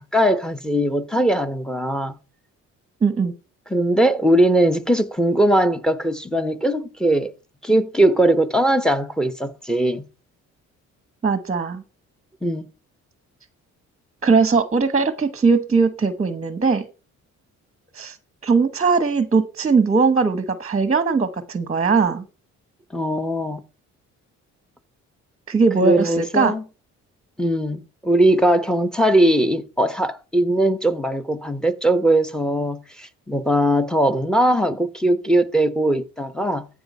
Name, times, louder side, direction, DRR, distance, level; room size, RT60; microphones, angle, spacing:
voice 1, 0.0-2.2 3.7-7.3 7.6-10.1 12.4-12.7 22.9-23.6 25.8-26.6 27.4-36.7, right 1 dB, ahead, 1.0 m, -20 dB
voice 2, 3.0-3.3 11.2-11.8 14.2-16.8 17.9-18.2 18.4-22.2 25.5-26.5, right 4 dB, 25° right, 1.0 m, -19 dB
14.0 x 4.8 x 5.4 m
cardioid pair, 90°, 30 cm